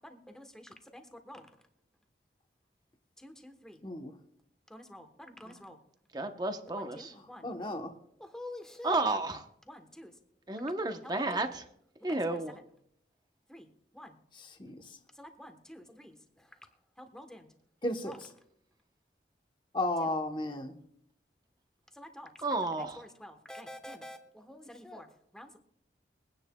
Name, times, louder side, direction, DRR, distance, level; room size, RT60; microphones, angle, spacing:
voice 1, 0.0-1.5 3.2-3.8 4.7-5.8 6.7-7.5 8.2-9.0 9.7-10.2 11.1-11.5 12.1-12.6 13.5-14.2 15.1-16.6 17.0-17.5 18.0-18.2 20.0-20.1 21.9-25.6, left 1 dB, 5° left, 6 dB, 1.1 m, -48 dB
voice 2, 6.1-7.1 8.8-9.4 10.5-11.6 12.0-12.5 22.4-23.0, right 2 dB, 20° right, 6 dB, 0.9 m, -32 dB
voice 3, 7.4-7.9 14.3-15.0 17.8-18.1 19.7-20.7, left 1 dB, 25° left, 5 dB, 1.0 m, -34 dB
23.0 x 9.8 x 2.3 m, 0.68 s
head